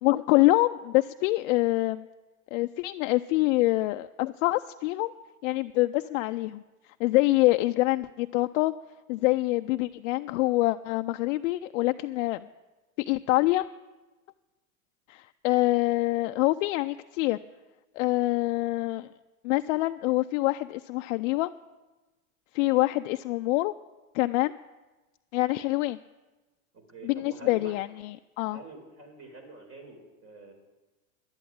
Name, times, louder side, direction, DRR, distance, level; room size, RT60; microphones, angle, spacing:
voice 1, 0.0-2.1 2.5-5.1 5.4-6.6 7.0-8.7 9.1-12.5 13.0-13.7 15.1-17.4 18.0-19.1 19.4-21.5 22.5-23.7 24.1-24.5 25.3-26.0 27.0-28.6, left 19 dB, 60° left, 9 dB, 0.5 m, -25 dB
voice 2, 26.7-27.7 28.5-30.5, right 2 dB, 35° right, 4 dB, 4.5 m, -46 dB
11.5 x 10.5 x 8.7 m, 1.2 s
hypercardioid pair, 100°, 42 cm